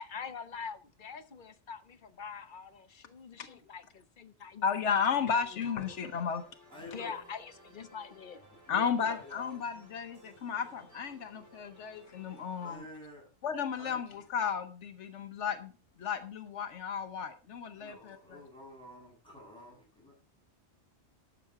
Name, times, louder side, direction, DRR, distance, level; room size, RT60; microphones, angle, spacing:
voice 1, 0.0-5.0 5.3-6.0 6.9-8.4 12.0-12.1, left 6 dB, 45° left, 1.0 m, -45 dB
voice 2, 4.6-6.4 8.7-12.8 13.4-15.7 16.0-18.4, left 6 dB, 80° left, 1.1 m, -33 dB
sound 1, 5.8-12.8, equal, 15° right, 5.1 m, -59 dB
voice 3, 6.7-7.2 8.7-9.7 12.6-13.3 13.8-14.0 17.8-20.1, left 1 dB, 5° left, 7.2 m, -49 dB
12.0 x 7.3 x 4.7 m
omnidirectional pair, 1.2 m